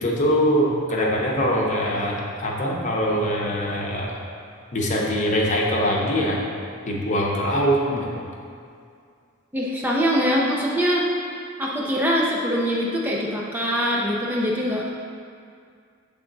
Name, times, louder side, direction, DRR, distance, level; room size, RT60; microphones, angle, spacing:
voice 1, 0.0-4.1 4.7-6.4 6.9-8.1, equal, 35° left, -2 dB, 0.8 m, -23 dB
voice 2, 9.5-11.1 11.6-14.8, equal, 10° right, -4 dB, 0.5 m, -23 dB
7.5 x 3.4 x 3.9 m, 2.3 s
head